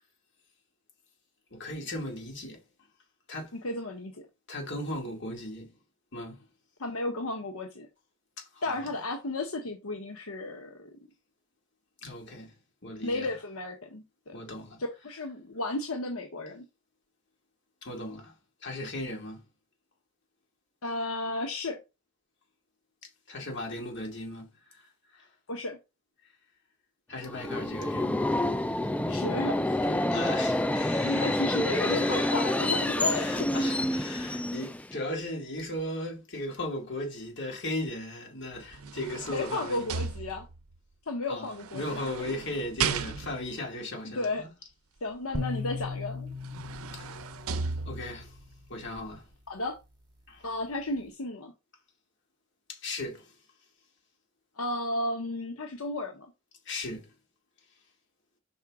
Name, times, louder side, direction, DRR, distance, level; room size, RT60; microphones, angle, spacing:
voice 1, 1.5-2.6 3.3-3.5 4.5-5.7 6.1-6.4 8.4-8.8 12.0-12.5 12.8-13.3 14.3-14.8 17.8-18.3 18.6-19.4 23.3-25.3 27.1-28.3 29.9-32.8 33.1-39.9 41.3-44.5 46.9-47.1 47.8-48.4 48.7-49.2 50.3-50.5 52.7-53.3 56.7-57.1, left 1 dB, 55° left, 2.4 m, -37 dB
voice 2, 3.5-4.2 6.8-7.9 8.6-11.0 13.0-14.4 14.8-16.6 20.8-21.8 25.5-25.8 29.1-30.2 31.0-33.5 39.3-40.4 41.1-41.8 42.8-43.0 44.0-44.5 45.0-46.3 49.5-49.8 50.4-51.5 54.6-56.3, left 2 dB, 85° left, 1.0 m, -33 dB
Subway metro underground, 27.2-35.0, left 1 dB, 5° left, 0.3 m, -28 dB
sound 1, 38.5-40.8 41.6-43.6 45.8-45.9 46.3-48.3 48.9-49.0, right 6 dB, 80° right, 0.6 m, -35 dB
sound 2, 45.3-48.6, left 4 dB, 20° right, 1.4 m, -38 dB
5.7 x 5.5 x 3.6 m
head